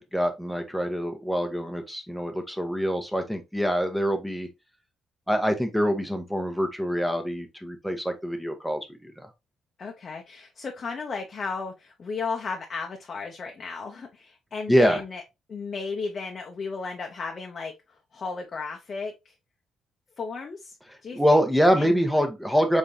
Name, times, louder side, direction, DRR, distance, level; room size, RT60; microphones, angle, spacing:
voice 1, 0.0-4.5 5.3-9.3 14.7-15.0 21.1-22.8, equal, ahead, 0.9 m, -25 dB
voice 2, 9.8-15.2 15.5-17.7 18.1-19.3 20.2-20.8 21.0-21.4 21.8-22.0, left 4 dB, 45° left, 0.7 m, -34 dB
3.8 x 3.5 x 2.6 m
cardioid pair, 90°, 0 cm